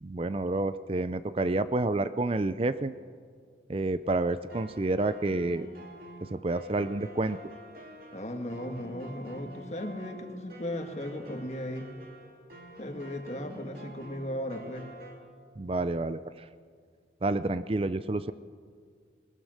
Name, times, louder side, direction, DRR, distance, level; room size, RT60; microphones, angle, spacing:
voice 1, 0.0-2.9 3.7-5.7 6.3-7.4 15.6-16.2 17.2-18.3, right 2 dB, 30° right, 13 dB, 0.4 m, -29 dB
sound 1, 4.1-15.1, right 1 dB, 55° right, 3.3 m, -48 dB
voice 2, 8.1-11.9 12.8-14.9, left 1 dB, 40° left, 4 dB, 1.9 m, -36 dB
20.5 x 20.0 x 6.5 m, 2.1 s
head